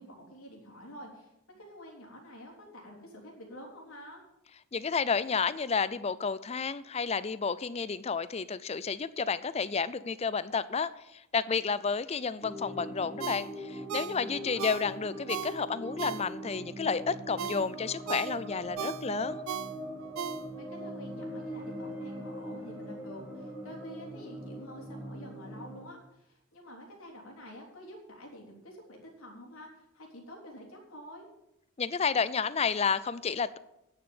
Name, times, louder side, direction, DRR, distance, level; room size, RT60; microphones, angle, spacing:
voice 1, 0.0-4.2 14.3-14.8 20.5-31.3, equal, 75° left, -1 dB, 3.4 m, -48 dB
voice 2, 4.7-19.4 31.8-33.6, left 5 dB, 30° left, 17 dB, 0.4 m, -31 dB
sound 1, 12.4-25.9, equal, 10° right, 1.9 m, -41 dB
Ringtone, 13.2-16.6 17.1-20.8 21.2-21.3, right 8 dB, 75° right, 0.4 m, -39 dB
9.9 x 6.9 x 8.8 m, 0.87 s
head